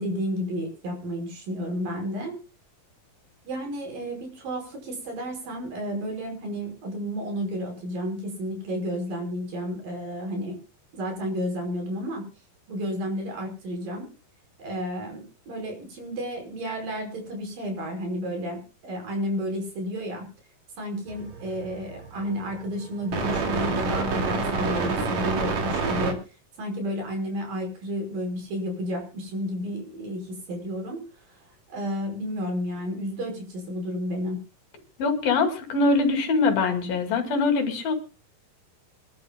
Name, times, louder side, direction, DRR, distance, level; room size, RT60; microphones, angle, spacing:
voice 1, 0.0-2.4 3.5-10.6 10.9-12.3 12.7-14.1 14.6-20.3 20.8-26.2 26.6-31.0 31.3-34.4, equal, 70° right, 3 dB, 6.8 m, -32 dB
sound 1, 21.1-26.1, right 4 dB, 50° right, 3.6 m, -28 dB
voice 2, 35.0-37.9, left 3 dB, 75° left, 5 dB, 4.3 m, -23 dB
27.0 x 11.5 x 2.3 m, 0.33 s
omnidirectional pair, 4.2 m